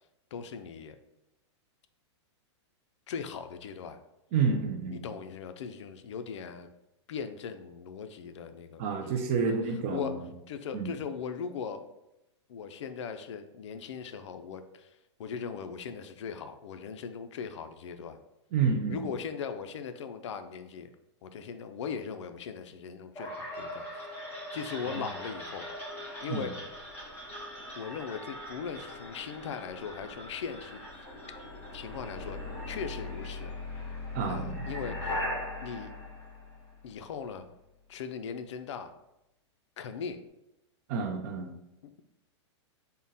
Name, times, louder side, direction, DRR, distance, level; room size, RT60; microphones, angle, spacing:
voice 1, 0.3-1.0 3.1-4.0 4.9-6.7 7.1-8.9 9.4-9.6 9.9-10.2 10.5-11.9 12.5-18.2 18.9-20.9 21.2-24.0 24.5-25.7 26.2-26.5 27.8-31.1 31.7-32.4 32.7-33.5 34.2-35.2 35.6-35.9 36.8-37.5 37.9-38.9 39.8-40.2, left 6 dB, 75° left, 9 dB, 0.4 m, -39 dB
voice 2, 4.3-5.0 8.8-10.3 10.7-11.0 18.5-19.1 24.8-25.0 26.3-26.5 34.1-35.0 40.9-41.5, right 5 dB, 30° right, 5 dB, 0.3 m, -30 dB
sound 1, 23.1-37.0, left 1 dB, 10° left, 0.9 m, -40 dB
3.6 x 2.1 x 4.0 m, 0.88 s
supercardioid pair, 165°, 15 cm